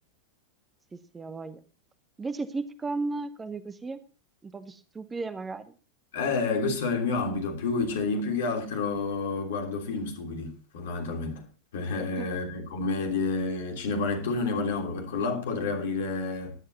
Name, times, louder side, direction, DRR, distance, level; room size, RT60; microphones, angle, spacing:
voice 1, 0.9-1.6 2.2-4.0 4.4-5.7 12.0-12.3, right 3 dB, 15° right, 0.9 m, -35 dB
voice 2, 6.1-11.4 11.7-16.6, left 4 dB, 55° left, 3.2 m, -29 dB
17.5 x 11.0 x 2.8 m
figure-of-eight pair, 90°, 0 cm